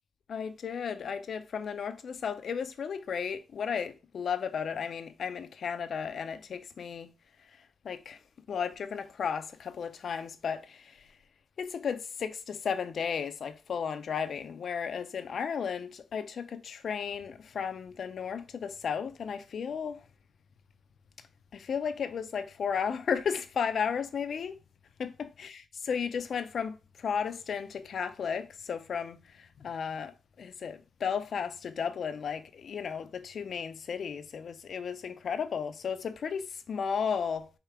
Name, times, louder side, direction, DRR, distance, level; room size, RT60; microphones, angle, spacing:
voice 1, 0.3-7.1 7.8-8.2 8.5-11.0 11.6-20.0 21.5-24.6 25.0-37.5, left 6 dB, 65° left, 0.5 m, -34 dB
4.7 x 2.9 x 3.4 m
cardioid pair, 80°, 0 cm